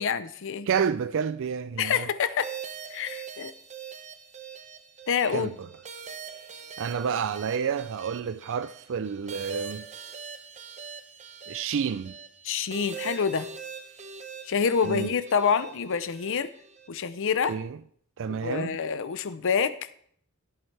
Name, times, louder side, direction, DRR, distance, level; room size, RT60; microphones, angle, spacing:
voice 1, 0.0-0.7 1.8-2.5 2.9-3.5 5.1-5.5 12.4-13.5 14.5-16.5 16.9-17.6 18.4-19.9, left 6 dB, 60° left, 0.6 m, -27 dB
voice 2, 0.7-2.1 5.3-5.7 6.8-9.9 11.5-12.2 14.8-15.1 17.5-17.8 18.2-18.8, right 7 dB, 60° right, 0.4 m, -29 dB
sound 1, 2.4-16.9, right 6 dB, 30° right, 0.8 m, -43 dB
14.0 x 8.1 x 3.3 m
head